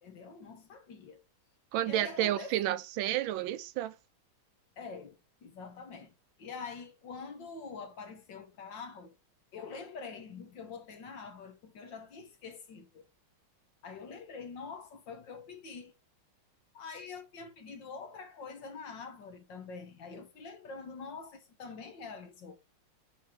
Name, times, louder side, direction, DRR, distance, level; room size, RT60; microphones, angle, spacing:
voice 1, 0.0-1.2 1.8-2.6 4.8-6.1 6.4-9.1 9.5-13.1 13.8-15.9 16.7-22.5, left 4 dB, 60° left, 2.1 m, -45 dB
voice 2, 1.7-3.9, right 13 dB, 75° right, 1.5 m, -31 dB
9.3 x 3.8 x 4.9 m
omnidirectional pair, 2.3 m